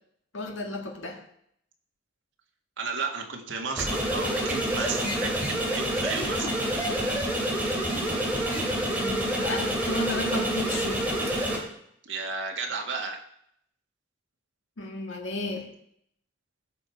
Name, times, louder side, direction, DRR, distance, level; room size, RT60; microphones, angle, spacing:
voice 1, 0.3-1.2 9.0-11.1 14.8-15.7, left 2 dB, 75° left, 1 dB, 1.8 m, -33 dB
voice 2, 2.8-6.5 12.0-13.2, right 4 dB, 70° right, 1 dB, 1.8 m, -33 dB
sound 1, 3.8-11.6, right 1 dB, 10° right, 2.5 m, -27 dB
15.0 x 6.1 x 4.6 m, 0.70 s
head